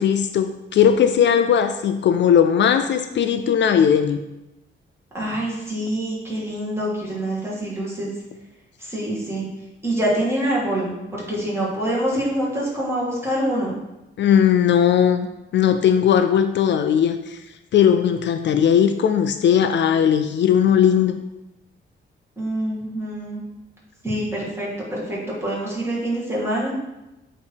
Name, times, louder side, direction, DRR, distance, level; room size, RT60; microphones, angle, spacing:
voice 1, 0.0-4.2 14.2-15.3 15.5-17.4 17.7-21.2, left 8 dB, 65° left, 8 dB, 0.4 m, -18 dB
voice 2, 5.1-8.1 8.8-9.5 9.8-13.8 22.4-23.4 24.0-26.8, right 1 dB, 10° right, -6 dB, 2.1 m, -25 dB
8.6 x 3.1 x 4.5 m, 0.95 s
wide cardioid pair, 145°, 20 cm